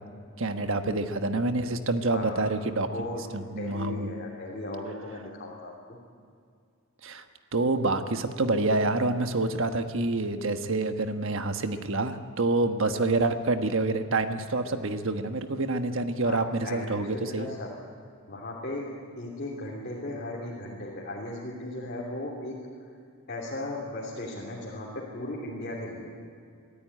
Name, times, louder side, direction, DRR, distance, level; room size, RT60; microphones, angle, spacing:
voice 1, 0.4-2.9 3.3-4.1 7.0-7.2 7.5-17.5, right 2 dB, 65° right, 7 dB, 1.3 m, -27 dB
voice 2, 2.1-2.4 2.9-3.3 3.6-6.0 12.9-13.0 16.2-17.7 18.3-22.6 23.3-26.1, left 1 dB, 45° left, -5 dB, 3.1 m, -37 dB
22.5 x 14.0 x 10.0 m, 2.3 s
head